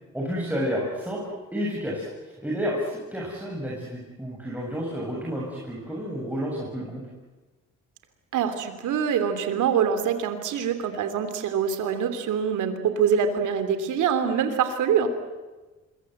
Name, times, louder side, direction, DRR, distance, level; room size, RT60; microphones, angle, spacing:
voice 1, 0.1-1.2 1.5-7.0, equal, 5° right, -4 dB, 7.4 m, -30 dB
voice 2, 8.3-15.1, right 7 dB, 80° right, 9 dB, 3.3 m, -24 dB
26.0 x 23.5 x 8.1 m, 1.2 s
cardioid pair, 90°, 30 cm